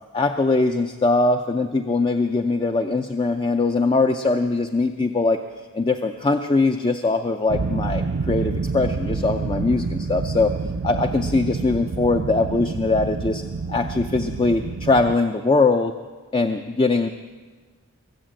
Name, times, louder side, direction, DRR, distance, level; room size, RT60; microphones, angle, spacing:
voice 1, 0.1-5.4 5.7-10.5 10.8-13.4 13.7-15.9 16.3-17.1, left 3 dB, 25° left, 6 dB, 0.4 m, -21 dB
sound 1, 7.5-15.1, right 4 dB, 70° right, 0.5 m, -28 dB
22.5 x 8.2 x 7.6 m, 1.4 s
head